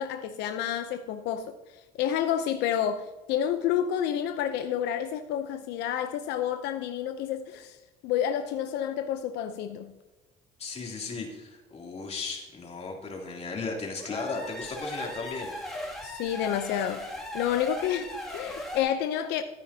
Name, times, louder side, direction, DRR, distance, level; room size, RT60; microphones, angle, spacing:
voice 1, 0.0-7.8 8.0-9.9 16.0-17.1 17.3-19.4, left 9 dB, 90° left, 8 dB, 0.6 m, -29 dB
voice 2, 10.6-15.5, left 3 dB, 40° left, -1 dB, 2.9 m, -36 dB
sound 1, 13.9-18.8, left 1 dB, ahead, 2.3 m, -38 dB
14.0 x 9.1 x 2.8 m, 1.2 s
cardioid pair, 110°, 17 cm